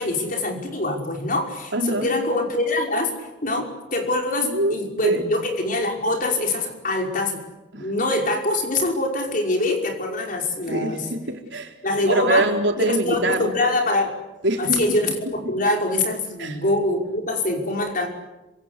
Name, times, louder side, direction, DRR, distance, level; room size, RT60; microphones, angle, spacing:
voice 1, 0.0-3.1 3.4-7.4 7.7-11.1 11.8-12.5 12.8-14.1 14.6-18.1, left 2 dB, 45° left, 2 dB, 5.5 m, -24 dB
voice 2, 1.7-2.2 4.4-5.2 7.7-7.9 10.6-11.7 12.0-13.6 14.4-14.8 15.3-15.5 16.4-16.6, right 1 dB, 70° right, 3 dB, 4.1 m, -24 dB
27.0 x 25.5 x 8.5 m, 1.0 s
head